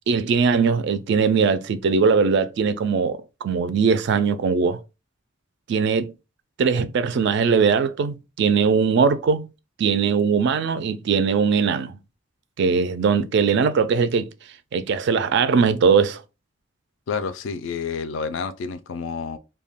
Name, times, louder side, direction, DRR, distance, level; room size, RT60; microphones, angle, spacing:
voice 1, 0.1-4.8 5.7-6.1 6.6-9.5 9.8-12.0 12.6-14.3 14.7-16.2, right 5 dB, 60° right, 0.3 m, -20 dB
voice 2, 17.1-19.4, left 5 dB, 65° left, 0.3 m, -29 dB
2.2 x 2.1 x 3.4 m
head